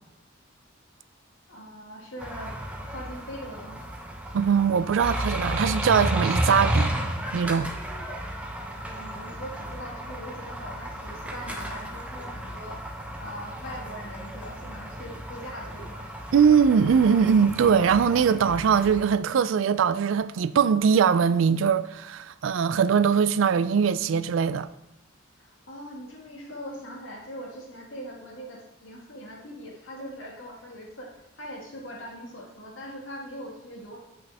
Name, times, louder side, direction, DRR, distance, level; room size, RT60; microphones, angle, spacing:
voice 1, 1.5-2.6 2.9-3.8 8.8-12.8 13.2-16.1 25.4-34.0, equal, 70° left, 1.8 m, -41 dB
sound 1, 2.2-19.1, right 1 dB, 5° right, 0.8 m, -33 dB
voice 2, 4.3-6.9 7.3-7.7 16.3-24.7, right 6 dB, 70° right, 0.3 m, -21 dB
8.2 x 6.1 x 3.4 m
head